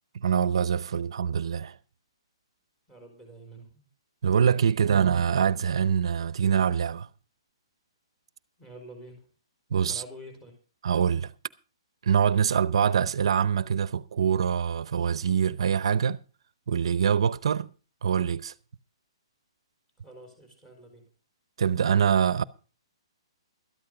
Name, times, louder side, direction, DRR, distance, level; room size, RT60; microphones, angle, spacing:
voice 1, 0.1-1.7 4.2-7.1 9.7-10.0 10.8-11.3 12.0-16.2 16.7-17.7 18.0-18.5 21.6-22.4, right 7 dB, 70° right, 0.7 m, -24 dB
voice 2, 2.9-3.9 8.6-9.3 9.9-10.5 20.0-21.1, right 1 dB, 10° left, 4.4 m, -47 dB
13.5 x 11.5 x 5.0 m
hypercardioid pair, 160°, 3 cm